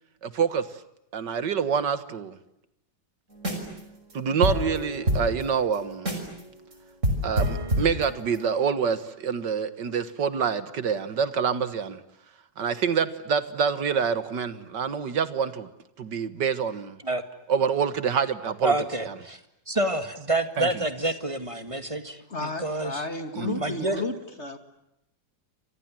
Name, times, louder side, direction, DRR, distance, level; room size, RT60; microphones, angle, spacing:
voice 1, 0.2-0.7 1.1-2.4 4.1-6.2 7.2-12.0 12.6-15.7 16.0-17.0 17.5-18.7 20.6-20.7 23.3-23.7, right 6 dB, 75° right, 2.1 m, -26 dB
sound 1, 3.3-3.8 4.1-4.2 4.4-6.4 6.7-6.8 7.0-8.5, equal, 40° right, 6.2 m, -27 dB
voice 2, 18.6-19.4 19.7-23.1 23.6-24.0, right 2 dB, 20° right, 2.0 m, -28 dB
voice 3, 22.3-24.6, left 3 dB, 40° left, 2.7 m, -32 dB
29.5 x 26.5 x 7.5 m
omnidirectional pair, 1.9 m